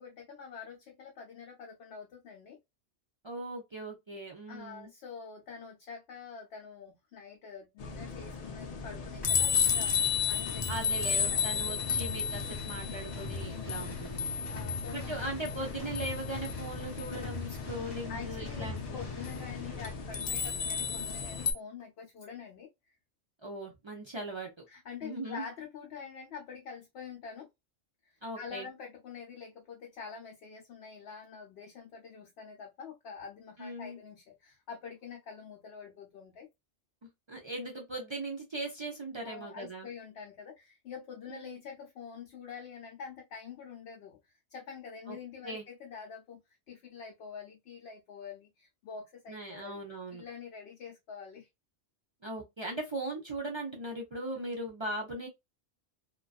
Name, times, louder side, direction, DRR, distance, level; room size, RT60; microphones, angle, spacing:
voice 1, 0.0-2.6 4.5-10.8 11.3-11.6 13.4-13.8 14.5-15.1 18.1-23.0 24.7-27.5 28.0-36.5 39.2-46.4 46.7-49.8 50.1-51.5, left 6 dB, 70° left, 0.8 m, -46 dB
voice 2, 3.2-4.9 10.7-14.3 14.9-19.0 23.4-24.5 25.0-25.5 28.2-28.7 33.6-34.0 37.3-39.9 41.3-41.6 45.1-45.2 45.4-45.6 49.3-50.2 52.2-55.3, right 1 dB, 45° right, 0.3 m, -39 dB
sound 1, 7.8-21.5, left 7 dB, 90° left, 0.3 m, -33 dB
sound 2, 9.2-20.0, left 4 dB, 30° left, 0.5 m, -42 dB
2.3 x 2.3 x 2.3 m
omnidirectional pair, 1.2 m